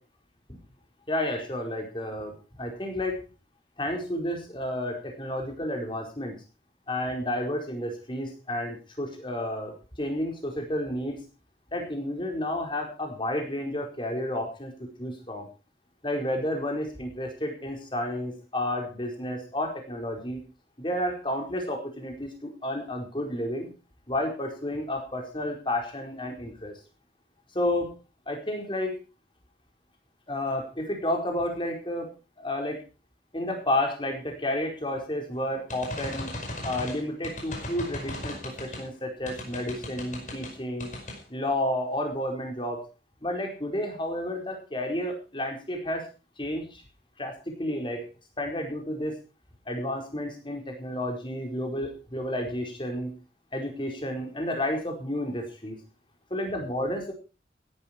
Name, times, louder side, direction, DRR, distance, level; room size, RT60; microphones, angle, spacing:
voice 1, 1.1-2.3 2.6-3.2 3.8-6.3 6.9-9.7 10.0-11.2 11.7-15.5 16.0-20.4 20.8-23.7 24.1-26.7 27.5-27.9 28.3-28.9 30.3-32.1 32.4-32.8 33.3-36.3 36.6-40.9 41.3-42.9 43.2-46.1 46.4-46.8 47.2-48.1 48.4-49.2 49.7-53.1 53.5-55.8 56.3-57.1, left 1 dB, 30° left, 2 dB, 4.7 m, -31 dB
sound 1, 35.7-38.9 39.3-40.5 40.8-41.2, left 1 dB, 45° left, 5.1 m, -37 dB
16.0 x 12.0 x 4.5 m, 0.32 s
head